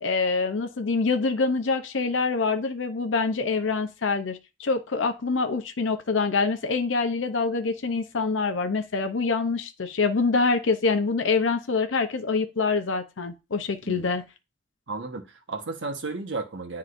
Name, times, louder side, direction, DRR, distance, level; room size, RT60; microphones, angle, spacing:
voice 1, 0.0-14.2, left 4 dB, 80° left, 0.6 m, -25 dB
voice 2, 14.9-16.8, right 3 dB, 75° right, 1.3 m, -33 dB
9.8 x 3.7 x 2.6 m
head